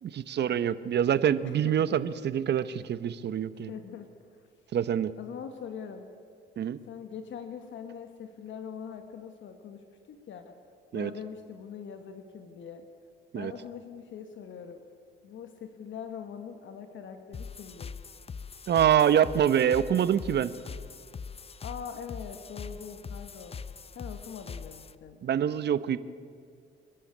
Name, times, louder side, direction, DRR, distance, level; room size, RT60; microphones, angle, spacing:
voice 1, 0.0-3.7 4.7-5.1 6.6-6.8 10.9-11.1 13.3-13.5 18.7-20.5 25.2-26.0, right 9 dB, 60° right, 15 dB, 1.0 m, -25 dB
voice 2, 1.4-2.0 3.5-4.1 5.2-6.1 6.9-10.6 10.9-12.9 13.3-14.8 15.2-17.9 21.6-23.6 23.9-25.2, left 7 dB, 70° left, 7 dB, 1.7 m, -42 dB
sound 1, 17.3-24.9, left 5 dB, 30° left, 0.7 m, -42 dB
28.5 x 11.5 x 8.6 m, 2.2 s
cardioid pair, 90°, 20 cm